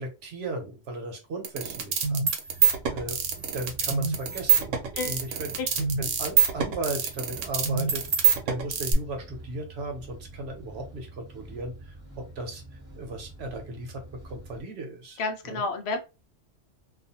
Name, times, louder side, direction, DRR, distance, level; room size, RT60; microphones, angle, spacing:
voice 1, 0.0-2.2 2.5-2.6 2.9-5.5 6.0-12.6 13.0-15.2 15.4-15.6, right 2 dB, 65° right, 3 dB, 1.0 m, -36 dB
sound 1, 1.4-8.9, right 8 dB, 90° right, 1.0 m, -24 dB
sound 2, 2.5-14.6, right 2 dB, 10° right, 1.0 m, -46 dB
voice 2, 15.2-16.0, left 3 dB, 70° left, 5 dB, 0.8 m, -30 dB
2.4 x 2.4 x 2.7 m, 0.27 s
omnidirectional pair, 1.2 m